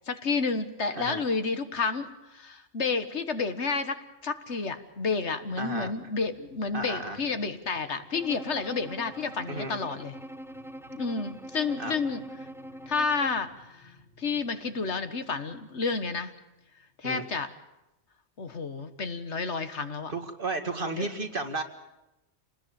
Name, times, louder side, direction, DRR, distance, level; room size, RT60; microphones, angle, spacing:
voice 1, 0.1-10.1 10.9-12.2 12.9-13.9 14.2-16.3 17.0-17.5 18.4-20.1 20.9-21.1, left 4 dB, 90° left, 9 dB, 1.8 m, -30 dB
sound 1, 4.3-17.2 17.7-17.8, left 2 dB, 60° left, 3.5 m, -58 dB
voice 2, 5.6-5.9 6.7-7.2 9.5-9.7 11.8-11.9 17.0-17.2 20.1-21.6, right 2 dB, 50° right, 5 dB, 2.3 m, -33 dB
Bowed string instrument, 8.1-13.5, right 1 dB, 5° right, 0.7 m, -43 dB
27.5 x 19.5 x 8.8 m, 0.97 s
omnidirectional pair, 1.1 m